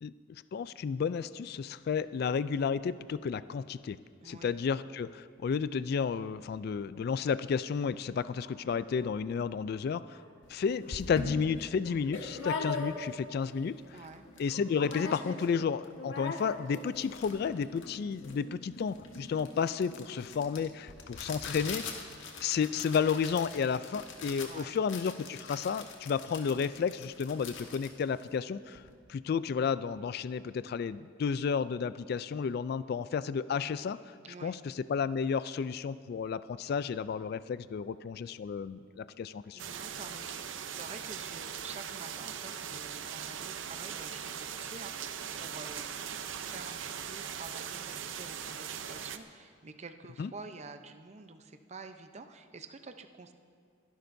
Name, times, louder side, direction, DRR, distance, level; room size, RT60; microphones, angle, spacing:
voice 1, 0.5-4.0 4.2-10.2 10.5-13.8 14.4-22.0 22.4-28.8 29.1-34.1 34.4-39.6 50.2-50.3, left 6 dB, 55° left, 15 dB, 0.3 m, -32 dB
voice 2, 4.2-4.5 13.9-14.2 24.3-24.7 34.2-34.6 39.5-53.3, right 4 dB, 35° right, 8 dB, 0.7 m, -48 dB
Dog, 6.9-7.3 7.6-7.7 8.0-9.4 9.7-9.8 10.1-10.3 10.7-12.1 12.5-12.7 12.9-13.3 13.8-13.9 14.5-15.3 15.7-15.8, left 2 dB, 70° left, 2.3 m, -57 dB
sound 1, 10.4-10.5 10.9-13.3 13.7-13.8 14.0-14.4 14.7-15.6 15.8-28.9, left 4 dB, 90° left, 1.6 m, -41 dB
sound 2, 39.6-49.2, right 8 dB, 85° right, 0.6 m, -40 dB
29.0 x 11.0 x 2.7 m, 2.2 s
head